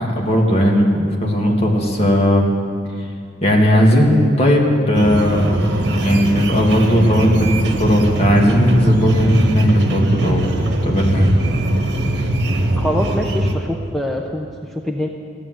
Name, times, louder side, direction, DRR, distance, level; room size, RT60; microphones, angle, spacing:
voice 1, 0.0-2.5 3.4-5.7 6.0-11.3, equal, 35° left, -1 dB, 2.1 m, -16 dB
sound 1, 4.9-13.5, right 1 dB, 65° right, 1.4 m, -20 dB
voice 2, 12.8-15.1, equal, ahead, 0 dB, 0.7 m, -24 dB
15.0 x 9.7 x 7.7 m, 2.3 s
head